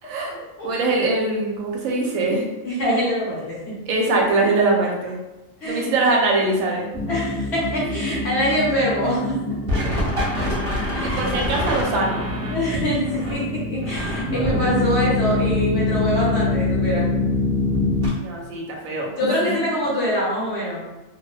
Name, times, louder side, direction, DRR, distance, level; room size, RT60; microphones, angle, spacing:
voice 1, 0.0-0.4 0.6-2.5 3.9-5.2 5.6-6.9 11.0-12.3 18.2-19.7, right 2 dB, 80° right, 0 dB, 1.0 m, -22 dB
voice 2, 2.6-3.8 5.6-5.9 7.1-9.4 9.7-9.8 10.2-10.3 10.9-11.4 12.4-17.1 19.2-20.8, equal, 55° left, -6 dB, 1.1 m, -24 dB
sound 1, 6.9-18.1, left 2 dB, 55° right, 0.7 m, -24 dB
2.6 x 2.0 x 2.3 m, 1.0 s
omnidirectional pair, 1.4 m